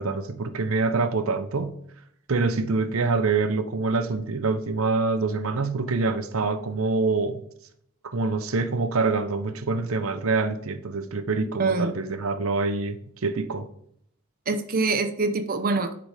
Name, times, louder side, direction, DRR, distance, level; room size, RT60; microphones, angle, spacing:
voice 1, 0.0-1.7 2.3-7.4 8.1-13.0 13.2-13.7, right 3 dB, 75° right, 0.7 m, -25 dB
voice 2, 11.6-11.9 14.5-15.9, right 3 dB, 45° right, 0.6 m, -24 dB
9.6 x 4.0 x 4.9 m
head